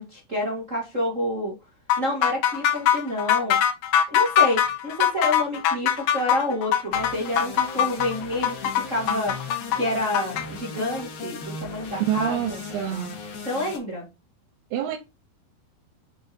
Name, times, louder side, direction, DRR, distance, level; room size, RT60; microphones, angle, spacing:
voice 1, 0.0-1.5 2.0-3.6 4.1-8.5 8.9-9.3 9.8-12.6 13.4-14.0, left 1 dB, 45° right, 1.0 m, -28 dB
sound 1, 1.9-10.5, left 10 dB, 85° left, 1.6 m, -22 dB
sound 2, 6.9-13.8, left 4 dB, 70° left, 3.8 m, -37 dB
voice 2, 12.1-13.1 14.7-15.0, right 10 dB, 85° right, 2.8 m, -27 dB
8.3 x 6.0 x 2.9 m
omnidirectional pair, 4.5 m